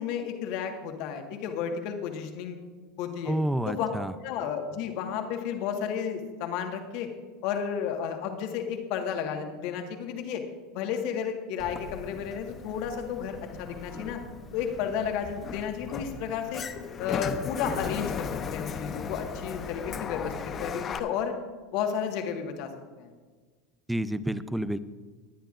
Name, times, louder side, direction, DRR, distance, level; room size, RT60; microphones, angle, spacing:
voice 1, 0.0-2.6 3.0-3.4 3.7-3.9 4.2-7.1 7.4-10.4 10.7-14.2 14.5-16.6 17.0-21.3 21.7-22.7 23.0-23.1, left 7 dB, 60° left, 4 dB, 1.6 m, -32 dB
voice 2, 3.3-4.1 23.9-24.8, right 1 dB, 5° right, 14 dB, 0.6 m, -29 dB
Sliding door, 11.6-21.0, left 6 dB, 35° left, 0.7 m, -37 dB
20.0 x 10.0 x 2.5 m, 1.4 s
hypercardioid pair, 90°, 0 cm